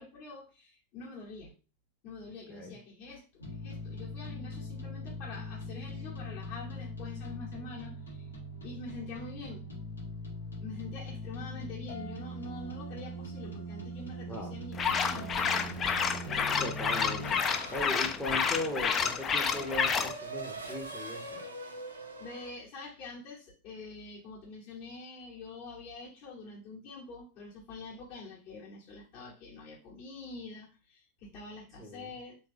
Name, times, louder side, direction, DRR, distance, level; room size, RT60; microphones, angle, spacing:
voice 1, 0.0-1.5 2.0-8.3 8.6-9.7 10.6-16.6 22.2-32.4, left 3 dB, 45° left, -4 dB, 1.0 m, -46 dB
sound 1, 3.4-17.3, equal, 75° left, 0.8 m, -41 dB
voice 2, 14.3-14.6 16.6-17.4 17.7-21.4 31.8-32.1, left 1 dB, 5° left, -3 dB, 0.7 m, -38 dB
sound 2, 14.7-20.1, left 6 dB, 25° left, 0.3 m, -29 dB
Race car auto racing / Accelerating revving vroom, 16.8-22.5, right 2 dB, 70° right, 0.5 m, -44 dB
3.2 x 2.3 x 3.2 m, 0.32 s
figure-of-eight pair, 90°, 0 cm